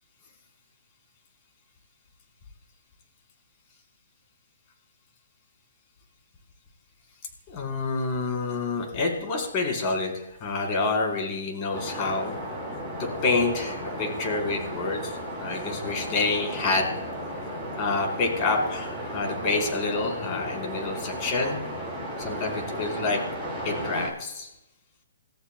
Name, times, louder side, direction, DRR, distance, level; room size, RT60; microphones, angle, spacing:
voice 1, 7.5-12.4 13.0-16.9 17.8-21.6 22.2-23.2 23.6-24.5, left 3 dB, 30° left, 1 dB, 4.3 m, -28 dB
sound 1, 11.7-24.1, equal, 10° left, 6.6 m, -34 dB
28.5 x 14.0 x 2.3 m, 0.91 s
hypercardioid pair, 150°, 0 cm